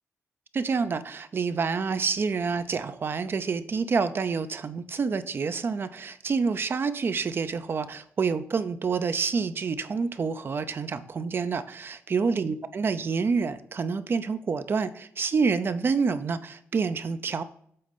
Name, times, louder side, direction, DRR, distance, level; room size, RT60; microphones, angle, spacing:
voice 1, 0.5-17.4, right 5 dB, 45° right, 12 dB, 0.5 m, -28 dB
7.7 x 4.1 x 5.4 m, 0.65 s
cardioid pair, 105°, 5 cm